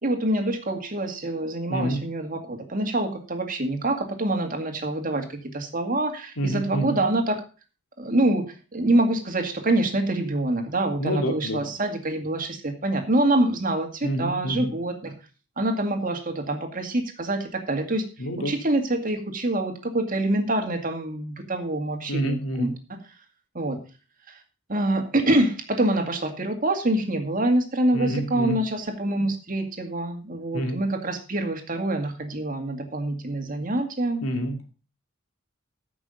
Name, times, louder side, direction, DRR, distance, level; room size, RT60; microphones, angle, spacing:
voice 1, 0.0-7.4 8.0-8.4 8.7-15.1 15.6-18.0 18.4-22.7 23.5-23.8 24.3-24.4 24.7-34.2, right 1 dB, 40° right, 5 dB, 2.2 m, -25 dB
voice 2, 1.7-2.0 6.4-7.0 11.0-11.6 14.0-14.7 18.2-18.6 22.1-22.7 27.9-28.6 30.5-30.8 34.2-34.6, equal, 85° left, 4 dB, 2.5 m, -27 dB
14.5 x 6.2 x 5.2 m, 0.35 s
head